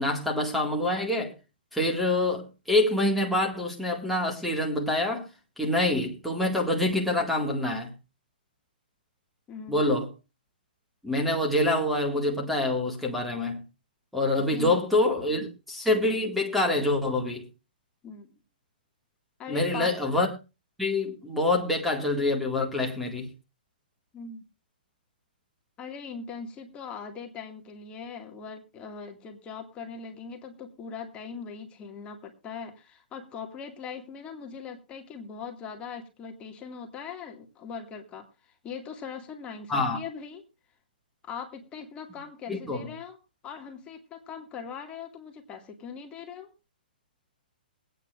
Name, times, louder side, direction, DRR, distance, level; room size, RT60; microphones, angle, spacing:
voice 1, 0.0-1.3 1.7-5.3 5.6-7.9 9.7-10.1 11.0-13.6 14.1-17.5 19.5-20.3 20.8-23.3 39.7-40.0 42.5-42.9, left 2 dB, ahead, 1.9 m, -26 dB
voice 2, 9.5-9.9 14.5-15.5 18.0-18.3 19.4-19.9 24.1-24.4 25.8-40.4 41.2-43.2 43.4-46.5, left 6 dB, 20° left, 2.0 m, -40 dB
23.0 x 9.1 x 2.5 m
hypercardioid pair, 145°, 5 cm